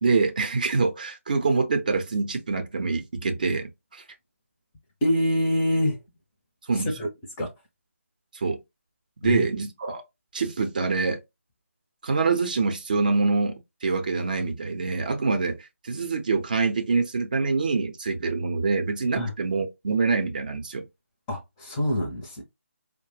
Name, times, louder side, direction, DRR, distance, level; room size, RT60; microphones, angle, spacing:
voice 1, 0.0-4.0 6.7-6.9 8.3-8.6 9.2-10.0 10.3-11.2 12.0-20.9, right 4 dB, 35° right, 0.7 m, -25 dB
voice 2, 5.0-6.0 6.8-7.1 7.4-7.5 9.2-9.4 19.1-19.3 21.3-22.4, left 1 dB, 15° left, 0.6 m, -25 dB
4.7 x 2.1 x 3.1 m
figure-of-eight pair, 155°, 8 cm